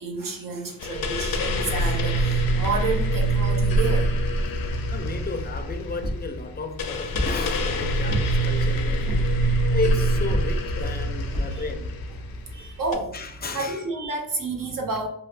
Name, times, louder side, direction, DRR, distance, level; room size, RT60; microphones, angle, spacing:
voice 1, 0.0-4.1 11.5-11.6 12.5-13.1 13.5-15.1, right 3 dB, 65° right, 0.7 m, -30 dB
sound 1, 0.8-12.9, right 1 dB, 80° left, 0.5 m, -25 dB
voice 2, 4.9-9.3 9.7-11.9 13.1-13.8, left 3 dB, 30° left, 0.4 m, -32 dB
sound 2, 6.0-6.3 7.1-7.4 8.1-8.5 9.1-9.4 10.3-10.6 11.3-11.6 12.2-12.3 12.6-12.7, equal, 85° right, 0.9 m, -29 dB
3.2 x 2.3 x 2.4 m
cardioid pair, 70°, 35 cm